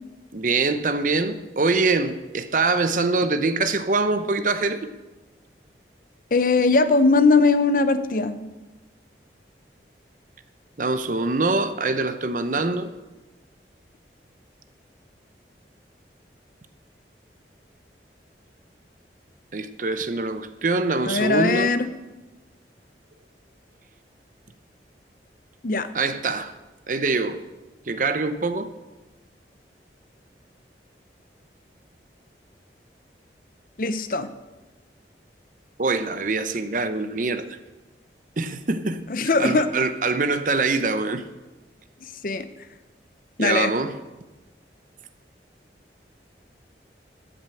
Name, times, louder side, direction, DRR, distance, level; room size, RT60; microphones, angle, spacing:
voice 1, 0.3-4.8 10.8-12.9 19.5-21.7 25.9-26.5 26.9-27.4 27.9-28.7 35.8-37.6 38.4-39.0 39.4-41.2 43.4-43.9, right 3 dB, 45° right, 0.7 m, -24 dB
voice 2, 6.3-8.5 21.1-21.9 25.6-25.9 33.8-34.3 39.1-39.7 42.2-42.5 43.4-43.7, left 3 dB, 50° left, 0.7 m, -20 dB
13.0 x 6.3 x 7.8 m
head